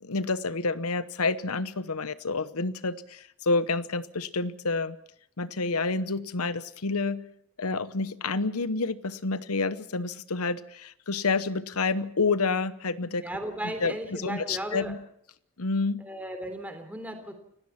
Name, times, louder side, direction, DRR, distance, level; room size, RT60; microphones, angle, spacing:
voice 1, 0.0-5.0 5.4-7.3 7.6-13.2 13.6-15.0 15.6-16.0, left 3 dB, 85° left, 1.0 m, -29 dB
voice 2, 13.2-14.9 16.0-17.3, right 1 dB, 5° right, 3.4 m, -36 dB
29.5 x 17.0 x 5.9 m
head